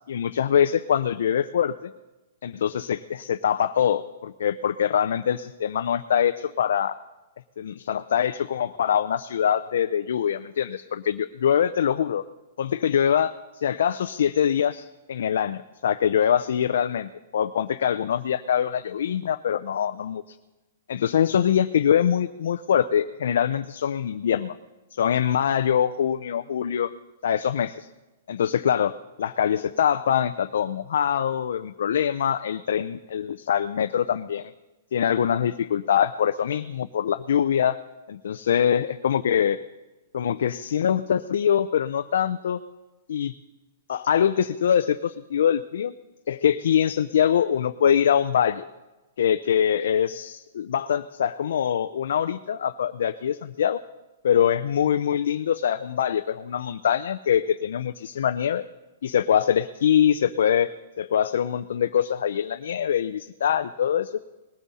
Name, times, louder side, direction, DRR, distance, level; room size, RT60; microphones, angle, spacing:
voice 1, 0.1-1.9 2.4-7.0 7.6-12.2 12.6-20.2 20.9-24.6 24.9-26.9 27.2-27.9 28.3-34.4 34.9-37.8 38.1-39.6 40.1-42.6 43.1-43.3 43.9-45.9 46.3-48.7 49.2-53.8 54.2-58.6 59.0-60.7 61.0-64.1, left 9 dB, 70° left, 9 dB, 0.5 m, -23 dB
19.5 x 15.0 x 4.2 m, 1.1 s
hypercardioid pair, 175°, 0 cm